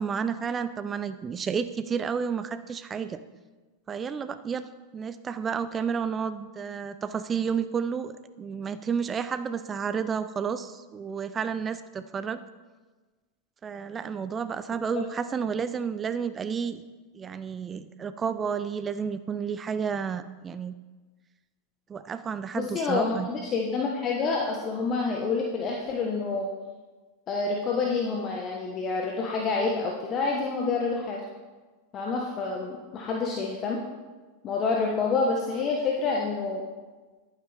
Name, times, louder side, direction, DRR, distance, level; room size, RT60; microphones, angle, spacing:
voice 1, 0.0-3.2 3.9-4.7 4.9-12.4 13.6-16.8 17.1-20.7 21.9-23.3, right 6 dB, 25° right, 12 dB, 0.6 m, -31 dB
voice 2, 22.5-26.5 27.3-31.2 31.9-33.8 34.4-36.6, left 4 dB, 35° left, -1 dB, 1.2 m, -28 dB
11.0 x 9.2 x 3.4 m, 1.3 s
hypercardioid pair, 90°, 0 cm